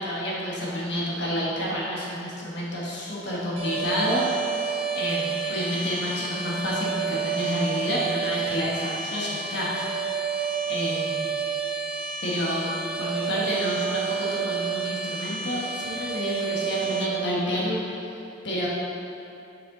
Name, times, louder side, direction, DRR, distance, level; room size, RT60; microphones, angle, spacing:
voice 1, 0.0-4.2 4.9-9.8 10.2-10.3 10.7-11.2 12.2-12.7 13.0-17.8 18.4-18.7, equal, 55° left, -6 dB, 1.2 m, -29 dB
sound 1, 3.6-17.1, right 6 dB, 30° right, 0.8 m, -30 dB
6.9 x 6.1 x 3.7 m, 2.7 s
head